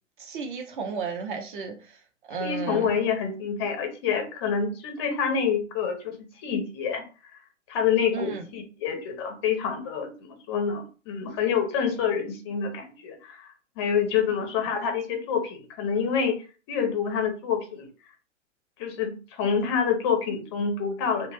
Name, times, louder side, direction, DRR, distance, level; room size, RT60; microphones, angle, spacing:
voice 1, 0.2-2.0 2.3-2.9 8.1-8.5, right 4 dB, 40° right, 0.7 m, -33 dB
voice 2, 2.4-6.0 6.4-7.0 7.7-13.5 13.8-16.4 16.7-17.9 18.8-21.3, left 6 dB, 20° left, 0.5 m, -27 dB
2.3 x 2.1 x 3.2 m
figure-of-eight pair, 125°, 38 cm